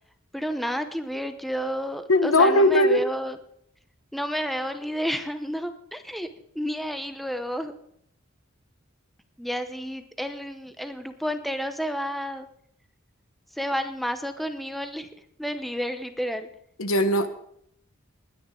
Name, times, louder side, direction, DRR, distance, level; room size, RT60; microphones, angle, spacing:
voice 1, 0.3-3.4 4.1-6.3 6.5-7.7 9.4-12.5 13.5-15.1 15.4-16.5, equal, ahead, 8 dB, 0.8 m, -30 dB
voice 2, 2.1-3.0 16.8-17.3, left 1 dB, 75° left, 10 dB, 1.3 m, -19 dB
20.5 x 10.0 x 3.8 m, 0.67 s
head